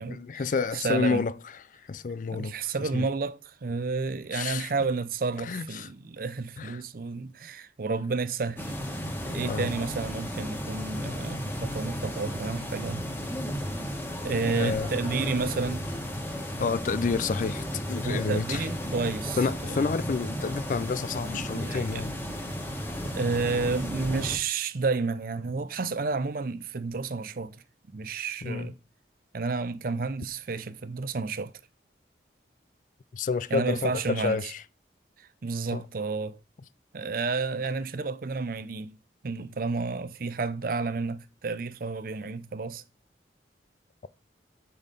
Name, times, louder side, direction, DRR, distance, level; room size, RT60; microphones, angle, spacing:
voice 1, 0.1-2.5 2.8-3.1 4.3-4.7 5.4-5.9 6.6-6.8 9.4-9.7 14.4-15.6 16.6-18.7 19.4-22.1 28.4-28.7 33.1-34.6 35.7-35.8, left 4 dB, 45° left, 0.4 m, -30 dB
voice 2, 0.7-1.2 2.3-13.1 14.2-15.8 18.0-19.4 19.7-19.8 21.5-22.0 23.0-27.6 27.9-28.7 29.3-31.5 33.5-34.4 35.2-36.4 36.9-39.0 39.2-42.8, right 4 dB, 50° right, 0.5 m, -31 dB
sound 1, 8.6-24.4, equal, 10° left, 1.5 m, -34 dB
6.4 x 5.5 x 5.1 m
head